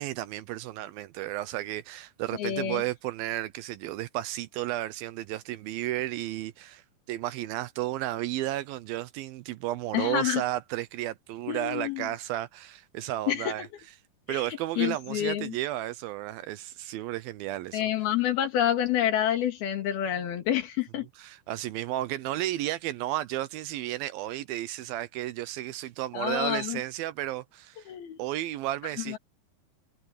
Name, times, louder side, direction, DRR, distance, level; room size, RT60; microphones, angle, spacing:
voice 1, 0.0-13.7 14.3-17.8 21.2-27.9 28.2-29.2, right 15 dB, 80° right, 2.3 m, -33 dB
voice 2, 2.4-2.8 9.9-10.4 11.5-12.1 13.3-13.7 14.3-14.4 14.8-15.6 17.7-21.1 26.1-26.8 27.9-28.2 29.1-29.2, left 11 dB, 70° left, 4.0 m, -28 dB
omnidirectional pair, 4.5 m